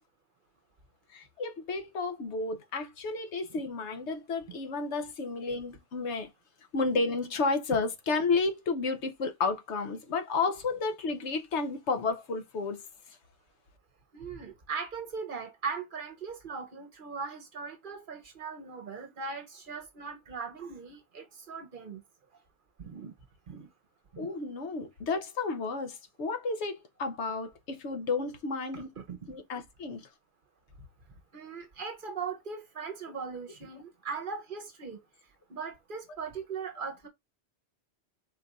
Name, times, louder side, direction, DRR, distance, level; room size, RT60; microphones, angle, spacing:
voice 1, 1.1-6.3 6.7-12.8 24.2-28.9 29.3-30.1, left 4 dB, 80° left, 1.1 m, -32 dB
voice 2, 14.1-22.0 22.8-23.1 23.5-23.7 24.1-24.3 28.7-29.4 31.3-35.0 35.5-37.1, right 5 dB, 50° right, 0.9 m, -39 dB
4.3 x 2.4 x 4.0 m
omnidirectional pair, 1.2 m